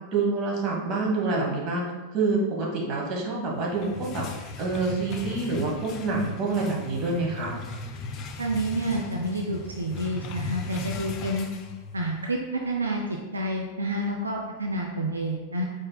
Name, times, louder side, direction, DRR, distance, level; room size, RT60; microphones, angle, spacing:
voice 1, 0.1-1.8 2.1-4.2 4.6-7.5, right 3 dB, 35° right, -2 dB, 1.2 m, -27 dB
sound 1, 3.6-12.2, left 3 dB, 35° left, 0.4 m, -38 dB
voice 2, 8.4-11.5 11.9-13.0 13.3-15.6, right 1 dB, 75° right, 0 dB, 0.4 m, -29 dB
4.6 x 4.4 x 2.2 m, 1.3 s
figure-of-eight pair, 90°, 0 cm